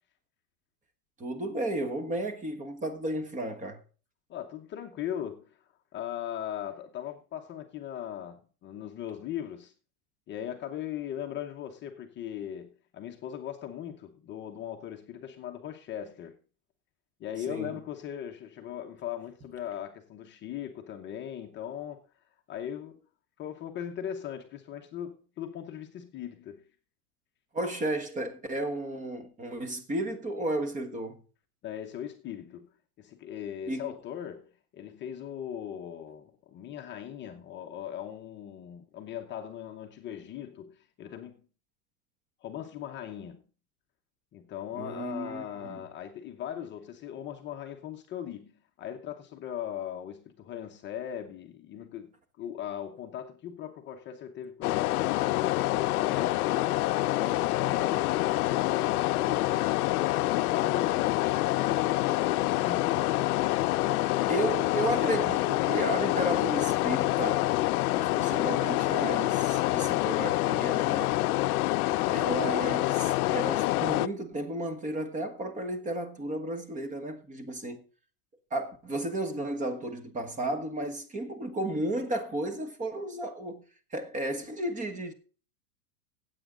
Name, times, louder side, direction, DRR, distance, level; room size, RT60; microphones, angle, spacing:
voice 1, 1.2-3.8 17.5-17.8 27.5-31.2 33.7-33.9 44.7-45.8 64.3-67.5 68.0-71.2 72.1-77.8 78.5-83.6 83.9-85.1, right 1 dB, 15° right, 1.4 m, -33 dB
voice 2, 4.3-9.7 10.3-16.4 17.2-22.1 22.5-23.0 23.4-26.7 31.6-41.4 42.4-43.4 44.3-52.1 52.4-59.7 60.1-64.8 71.9-72.3, left 10 dB, 25° left, 0.9 m, -39 dB
sound 1, 54.6-74.1, left 17 dB, 75° left, 0.6 m, -27 dB
15.5 x 8.3 x 3.8 m
supercardioid pair, 140°, 44 cm